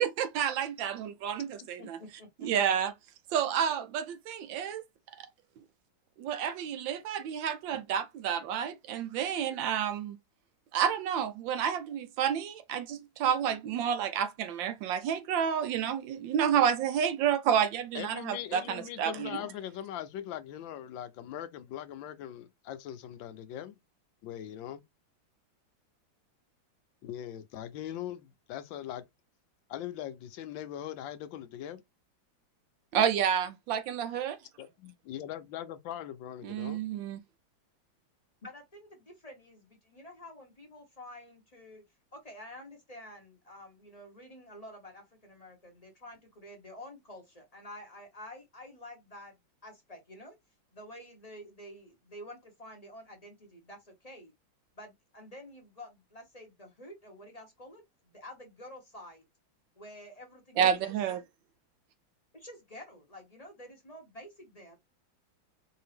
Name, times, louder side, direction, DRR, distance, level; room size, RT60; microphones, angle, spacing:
voice 1, 0.0-2.0 2.4-2.9 3.3-4.8 6.2-10.2 10.7-19.4 32.9-34.4 36.4-37.2 60.6-61.2, right 8 dB, 75° right, 1.3 m, -30 dB
voice 2, 1.8-2.5 38.4-41.8 42.1-49.3 49.6-50.4 50.7-54.3 54.8-59.2 59.8-60.9 62.3-64.8, left 1 dB, 25° left, 1.0 m, -49 dB
voice 3, 17.9-23.7 24.2-24.8 27.0-29.1 29.7-31.8 34.6-36.8, left 11 dB, 80° left, 1.3 m, -41 dB
4.8 x 2.7 x 3.4 m
omnidirectional pair, 2.1 m